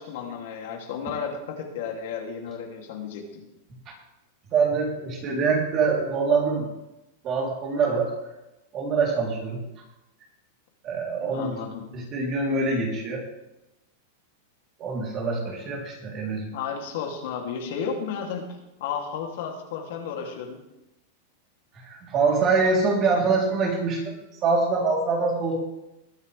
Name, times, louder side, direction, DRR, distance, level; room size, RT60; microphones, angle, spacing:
voice 1, 0.0-3.4 11.2-11.8 16.5-18.5 18.8-20.6, left 6 dB, 65° left, 1 dB, 2.8 m, -33 dB
voice 2, 4.5-6.6 7.2-8.1 8.7-9.6 10.8-11.5 11.9-13.2 14.8-16.5 21.8-24.2 24.4-25.7, right 4 dB, 30° right, -1 dB, 3.5 m, -24 dB
21.0 x 9.4 x 3.5 m, 0.95 s
supercardioid pair, 160°, 0 cm